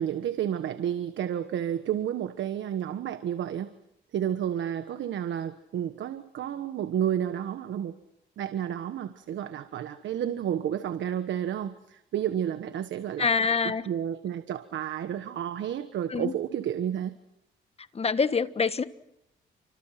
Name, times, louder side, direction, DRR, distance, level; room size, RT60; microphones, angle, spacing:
voice 1, 0.0-3.7 4.1-8.0 8.4-13.3 13.6-17.1, right 10 dB, 70° right, 1.4 m, -31 dB
voice 2, 13.2-13.9 16.1-16.3 17.9-18.8, left 5 dB, 30° left, 1.4 m, -25 dB
30.0 x 25.5 x 5.9 m
cardioid pair, 90°, 20 cm